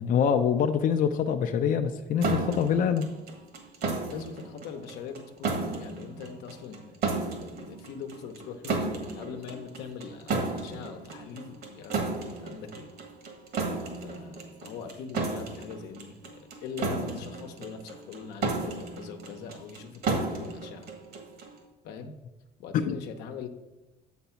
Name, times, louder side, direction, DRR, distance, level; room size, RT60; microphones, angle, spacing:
voice 1, 0.0-3.1 22.7-23.0, left 7 dB, 55° left, 6 dB, 0.5 m, -25 dB
sound 1, 2.2-21.6, right 3 dB, 65° right, 1.5 m, -34 dB
voice 2, 4.1-7.0 7.4-12.9 14.0-20.9 21.8-22.1 22.6-23.5, left 6 dB, 90° left, 5 dB, 0.8 m, -42 dB
7.0 x 4.1 x 5.7 m, 1.1 s
cardioid pair, 110°, 17 cm